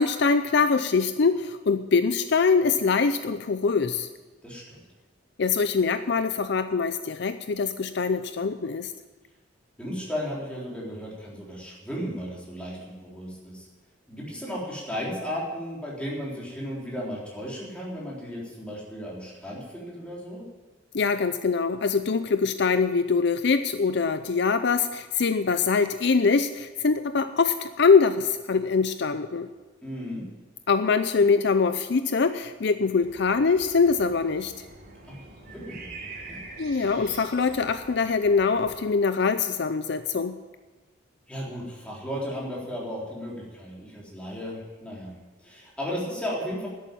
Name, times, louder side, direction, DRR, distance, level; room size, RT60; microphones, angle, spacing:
voice 1, 0.0-4.1 5.4-8.9 20.9-29.5 30.7-34.5 36.6-40.4, left 5 dB, 60° left, 10 dB, 0.5 m, -23 dB
voice 2, 4.4-4.8 9.8-13.7 14.1-20.4 29.8-30.2 35.1-36.4 41.3-45.1 45.4-46.7, equal, 5° left, -5 dB, 3.8 m, -35 dB
sound 1, 33.0-38.8, right 3 dB, 50° right, 3.4 m, -45 dB
11.5 x 8.4 x 9.1 m, 1.2 s
head